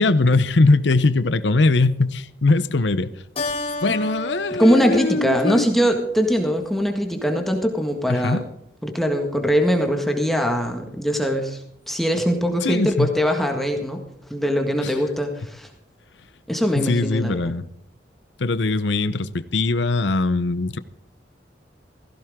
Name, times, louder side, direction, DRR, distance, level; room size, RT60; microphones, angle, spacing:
voice 1, 0.0-3.1 3.8-5.7 8.1-8.4 12.6-13.1 14.8-14.9 16.7-17.6 18.4-20.8, left 3 dB, 85° left, 0.8 m, -21 dB
Keyboard (musical), 3.4-6.2, left 2 dB, 30° left, 2.9 m, -32 dB
voice 2, 4.6-8.4 8.8-11.6 11.9-14.0 14.3-15.7 16.5-17.5, equal, ahead, 1.7 m, -21 dB
17.0 x 15.5 x 3.7 m
head